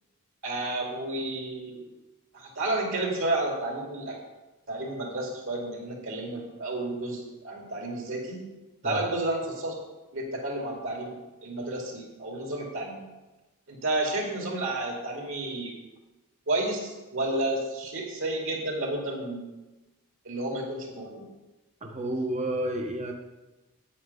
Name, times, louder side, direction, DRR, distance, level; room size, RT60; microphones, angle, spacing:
voice 1, 0.4-1.8 2.3-4.2 4.7-8.5 8.8-9.8 10.1-13.0 13.7-15.7 16.5-19.5 20.2-21.2, right 2 dB, 60° right, 0 dB, 2.7 m, -31 dB
voice 2, 21.8-23.1, right 1 dB, 30° right, 2 dB, 1.0 m, -30 dB
8.6 x 8.6 x 5.6 m, 1.1 s
head